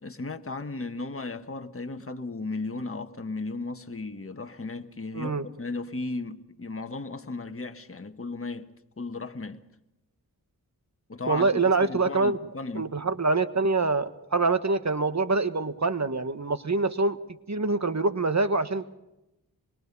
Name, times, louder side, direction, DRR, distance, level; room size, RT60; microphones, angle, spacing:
voice 1, 0.0-8.7 9.0-9.6 11.1-12.9, left 3 dB, 35° left, 1.5 m, -35 dB
voice 2, 11.3-12.4 12.7-17.2 17.5-18.8, right 3 dB, 40° right, 1.5 m, -25 dB
26.0 x 22.0 x 5.5 m
cardioid pair, 40°, 40 cm